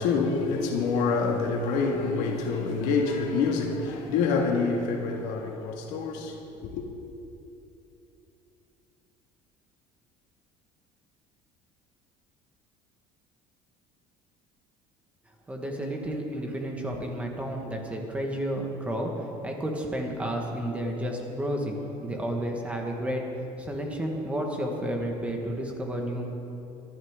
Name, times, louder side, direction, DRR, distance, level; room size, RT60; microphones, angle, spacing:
voice 1, 0.0-6.8, left 4 dB, 80° left, 1.9 m, -27 dB
voice 2, 15.5-23.2 23.6-26.3, right 1 dB, 10° right, 1.5 m, -31 dB
24.0 x 11.0 x 3.7 m
cardioid pair, 165°, 12 cm